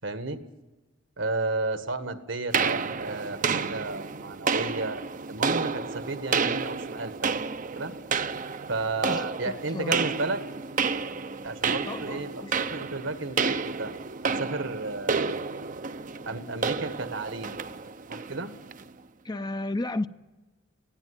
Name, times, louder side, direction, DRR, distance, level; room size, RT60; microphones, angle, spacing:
voice 1, 0.0-0.4 1.2-5.0 5.3-7.9 8.7-10.4 11.4-13.9 14.2-15.3 16.3-17.5 18.1-18.5, right 3 dB, 70° right, 1.6 m, -33 dB
sound 1, 2.5-18.9, right 5 dB, 40° right, 0.7 m, -30 dB
voice 2, 9.1-10.0 11.8-12.8 19.2-20.1, left 2 dB, 20° left, 0.6 m, -34 dB
20.0 x 16.5 x 9.8 m
head